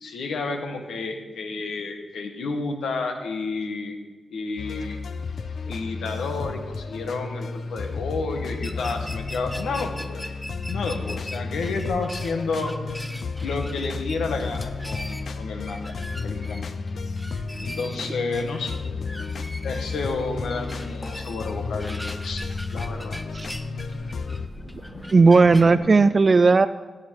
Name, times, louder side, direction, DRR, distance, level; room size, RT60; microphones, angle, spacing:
voice 1, 0.0-4.0 4.3-5.0 5.7-10.2 10.7-12.7 13.4-15.9 16.2-16.8 17.6-18.8 19.6-23.2, left 3 dB, 85° left, 5 dB, 1.4 m, -31 dB
sound 1, 4.6-24.5, left 4 dB, 70° left, 0.7 m, -32 dB
sound 2, 8.6-25.7, equal, 5° left, 0.8 m, -41 dB
sound 3, 18.9-19.0 19.2-25.9, left 1 dB, 45° left, 4.1 m, -42 dB
voice 2, 25.1-26.7, right 4 dB, 45° right, 11 dB, 0.3 m, -16 dB
15.5 x 8.0 x 4.6 m, 1.3 s
cardioid pair, 55°, 0 cm